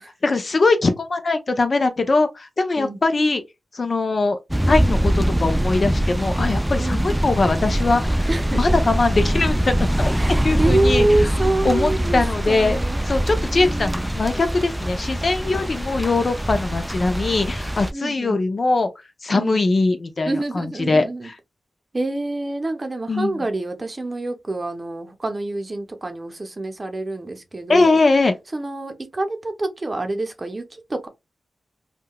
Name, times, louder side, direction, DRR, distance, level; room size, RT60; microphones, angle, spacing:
voice 1, 0.2-3.4 3.7-4.4 4.7-11.3 11.6-12.8 13.1-18.9 19.2-21.3 23.1-23.4 27.7-28.3, left 3 dB, 50° left, 0.5 m, -21 dB
sound 1, 4.5-17.9, right 1 dB, 10° right, 0.3 m, -23 dB
voice 2, 8.3-9.0 10.2-13.0 13.5-14.0 17.9-18.4 19.3-19.6 20.3-21.3 21.9-28.0 28.5-31.1, right 2 dB, 35° right, 0.7 m, -26 dB
3.7 x 2.3 x 2.2 m
cardioid pair, 50°, 0 cm